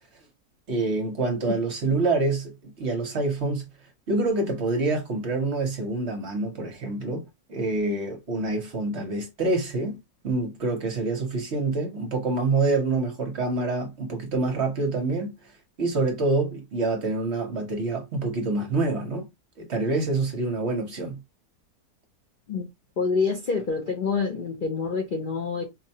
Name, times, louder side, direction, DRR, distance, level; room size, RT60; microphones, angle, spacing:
voice 1, 0.7-3.7 4.1-7.2 7.5-10.0 10.2-15.3 15.8-19.3 19.6-21.2, right 3 dB, 55° right, 1.0 m, -26 dB
voice 2, 23.0-25.6, left 4 dB, 50° left, 0.6 m, -27 dB
4.5 x 2.1 x 2.8 m
omnidirectional pair, 1.6 m